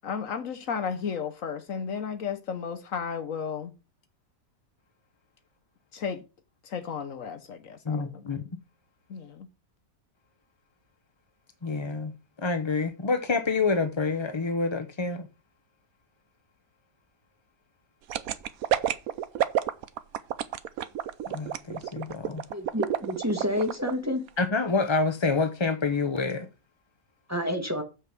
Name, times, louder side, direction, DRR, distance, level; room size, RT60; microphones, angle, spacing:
voice 1, 0.0-3.7 5.9-6.2 6.6-8.3 9.1-9.5, left 6 dB, 60° left, 1.2 m, -33 dB
voice 2, 7.8-8.4 11.6-12.1 12.4-15.3 21.3-22.4 24.4-26.5, left 4 dB, 30° left, 0.5 m, -27 dB
sound 1, 18.1-23.9 24.3-24.4, right 11 dB, 70° right, 1.1 m, -28 dB
voice 3, 22.5-24.2 27.3-27.8, left 1 dB, 10° right, 1.3 m, -29 dB
7.4 x 6.3 x 5.9 m
omnidirectional pair, 1.7 m